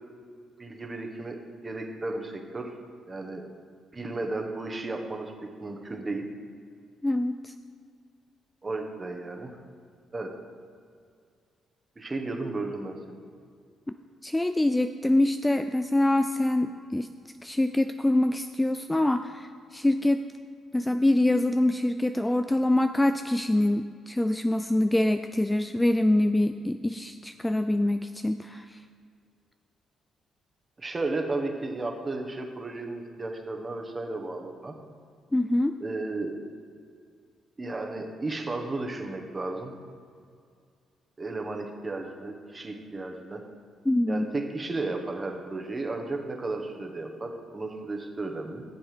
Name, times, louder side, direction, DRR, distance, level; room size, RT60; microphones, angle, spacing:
voice 1, 0.6-2.7 3.1-3.4 3.9-6.3 8.6-9.6 10.1-10.3 12.0-13.2 30.8-34.7 35.8-36.4 37.6-39.7 41.2-43.4 44.1-48.6, right 2 dB, 25° right, 3 dB, 1.4 m, -34 dB
voice 2, 7.0-7.5 14.2-17.1 17.4-20.2 20.7-28.8 35.3-35.8 43.9-44.3, left 1 dB, 10° left, 9 dB, 0.3 m, -25 dB
11.0 x 7.1 x 5.1 m, 2.2 s
cardioid pair, 90°, 0 cm